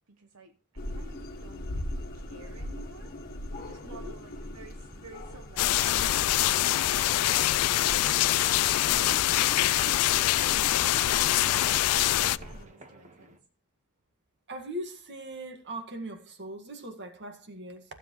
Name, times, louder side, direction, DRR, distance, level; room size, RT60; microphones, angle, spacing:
voice 1, 0.1-1.7 2.1-6.5 7.2-8.0 8.5-9.1 9.5-10.1 10.4-13.4, right 3 dB, 75° right, 1.0 m, -53 dB
sound 1, 0.8-12.6, left 1 dB, 45° left, 1.6 m, -40 dB
voice 2, 3.8-4.1 14.5-17.8, right 1 dB, 50° right, 1.8 m, -40 dB
sound 2, 5.6-12.4, left 14 dB, 85° left, 0.4 m, -24 dB
sound 3, 6.9-13.4, right 2 dB, 35° right, 1.4 m, -52 dB
15.0 x 7.8 x 3.1 m
head